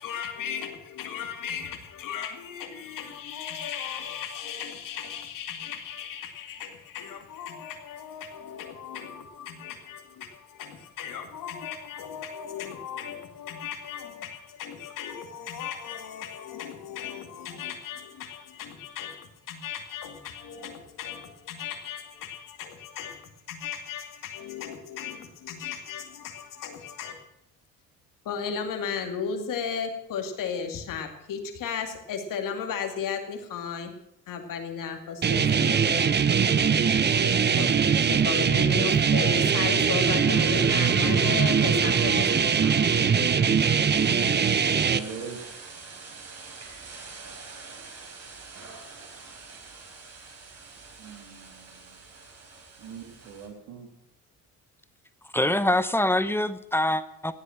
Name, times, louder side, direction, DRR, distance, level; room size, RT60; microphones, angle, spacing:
voice 1, 0.0-27.1 28.2-33.9 34.3-36.2 37.0-37.8 38.1-42.8, left 7 dB, 70° left, 5 dB, 2.5 m, -35 dB
sound 1, 35.2-45.0, right 6 dB, 30° right, 0.8 m, -22 dB
sound 2, 36.5-53.5, right 4 dB, 50° right, 4.0 m, -46 dB
voice 2, 44.8-45.5 51.0-52.0 52.8-53.9, right 6 dB, 85° right, 4 dB, 2.8 m, -42 dB
voice 3, 55.3-57.3, left 1 dB, 5° left, 13 dB, 0.9 m, -24 dB
17.0 x 8.2 x 7.2 m, 0.77 s
cardioid pair, 85°, 33 cm